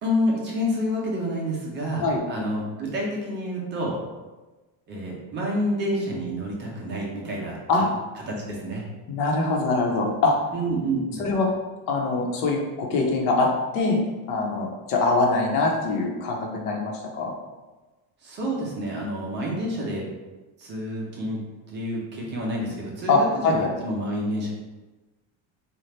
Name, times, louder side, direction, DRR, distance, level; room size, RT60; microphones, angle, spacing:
voice 1, 0.0-4.0 4.9-7.8 8.3-8.8 10.5-11.3 18.2-20.0 20.6-21.4 21.7-24.5, equal, 25° right, -3 dB, 0.4 m, -28 dB
voice 2, 9.1-10.3 11.2-11.5 11.9-13.5 13.7-14.0 14.3-17.3 23.1-23.7, left 3 dB, 90° left, 0 dB, 1.0 m, -23 dB
4.1 x 2.4 x 3.3 m, 1.2 s
cardioid pair, 180°, 50 cm